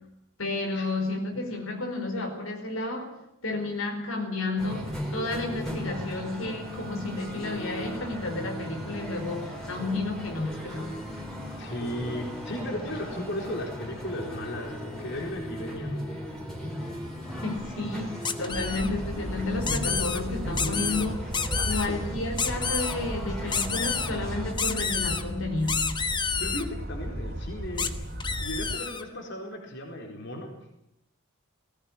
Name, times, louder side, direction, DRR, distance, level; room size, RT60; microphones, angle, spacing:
voice 1, 0.4-3.1 3.4-11.0 17.4-21.3 21.7-25.9, left 2 dB, 70° left, 4 dB, 4.6 m, -31 dB
sound 1, 4.6-24.5, equal, ahead, 4.9 m, -37 dB
voice 2, 11.6-16.0 21.5-22.0 26.4-27.9 28.4-30.5, left 1 dB, 55° left, 2 dB, 4.4 m, -35 dB
sound 2, 18.2-18.9 19.6-20.2 20.6-21.1 21.3-21.9 22.4-22.9 23.5-24.1 24.6-25.2 25.7-26.6 27.8-27.9 28.2-29.0, left 6 dB, 20° left, 1.2 m, -29 dB
sound 3, 18.5-28.8, equal, 45° right, 3.1 m, -35 dB
20.0 x 18.0 x 10.0 m, 0.82 s
head